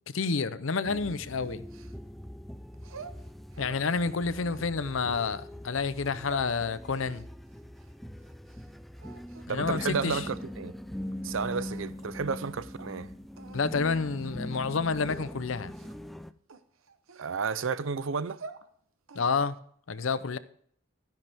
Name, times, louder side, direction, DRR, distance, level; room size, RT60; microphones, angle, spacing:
voice 1, 0.1-1.6 3.6-7.3 9.5-10.3 13.5-15.7 19.1-19.6 19.9-20.4, left 4 dB, 70° left, 0.7 m, -29 dB
sound 1, 0.8-16.3, equal, ahead, 0.4 m, -42 dB
sound 2, 0.9-2.3 2.7-3.9 4.3-5.4 6.0-6.5 6.9-8.7 9.0-9.6 10.0-10.5 11.1-11.2 11.5-12.1 12.4-12.5 12.8-12.9 13.4-13.7 14.1-14.3 14.9-15.2 15.7-16.1 16.5-17.7 18.2-18.7 19.1-19.6, right 4 dB, 85° right, 0.9 m, -48 dB
voice 2, 9.5-10.7 11.2-13.1 17.2-18.4, right 5 dB, 70° right, 0.5 m, -32 dB
12.5 x 10.5 x 3.5 m
head